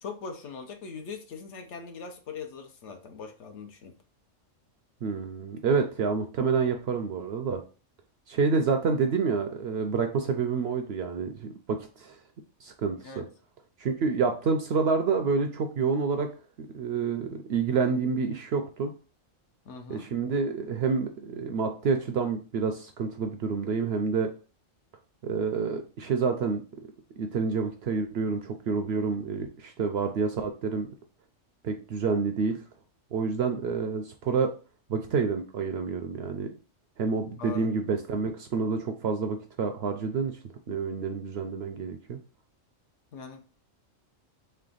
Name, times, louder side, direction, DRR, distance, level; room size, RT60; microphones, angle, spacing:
voice 1, 0.0-4.0 13.0-13.3 19.7-20.1 37.4-37.7 43.1-43.4, left 5 dB, 65° left, 5 dB, 0.9 m, -41 dB
voice 2, 5.0-7.6 8.3-12.2 12.6-13.2 13.8-16.3 16.6-18.9 19.9-24.3 25.2-26.6 27.2-30.9 31.6-32.6 33.1-34.5 34.9-36.5 37.0-40.4 40.7-42.2, right 5 dB, 65° right, 6 dB, 0.7 m, -28 dB
3.4 x 3.3 x 3.9 m, 0.36 s
omnidirectional pair, 1.4 m